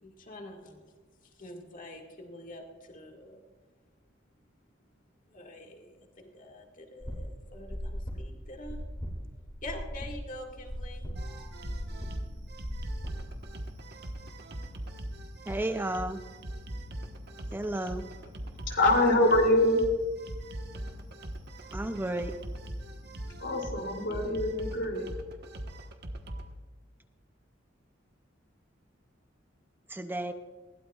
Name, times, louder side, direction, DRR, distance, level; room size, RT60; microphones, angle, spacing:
voice 1, 0.0-0.9 1.4-3.4 5.3-8.8 9.6-11.0, left 1 dB, 45° left, 1 dB, 1.9 m, -45 dB
sound 1, 7.0-13.4, equal, 25° left, 2.4 m, -39 dB
sound 2, 11.1-26.5, right 1 dB, 60° right, 1.2 m, -41 dB
voice 2, 15.4-16.2 17.5-18.0 21.7-22.3 29.9-30.3, right 1 dB, 10° right, 8 dB, 0.5 m, -32 dB
voice 3, 18.7-19.8 23.4-25.0, left 1 dB, 70° left, 1 dB, 2.9 m, -24 dB
20.5 x 16.5 x 2.4 m, 1.4 s
head